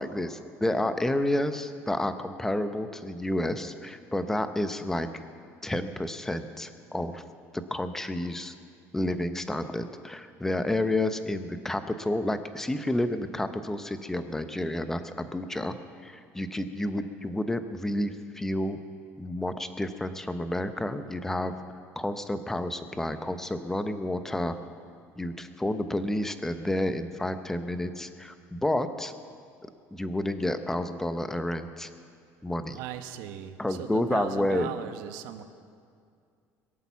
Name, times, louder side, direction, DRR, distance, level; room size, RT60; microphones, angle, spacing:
voice 1, 0.0-5.2 5.6-7.2 7.7-8.5 8.9-15.8 16.0-18.8 19.2-21.5 22.0-24.6 25.2-29.1 29.9-31.9 32.4-32.8 33.6-34.7, left 1 dB, 5° left, 9 dB, 0.7 m, -30 dB
voice 2, 32.7-35.4, right 11 dB, 80° right, 9 dB, 1.0 m, -38 dB
22.5 x 8.6 x 7.1 m, 2.3 s
cardioid pair, 155°, 6 cm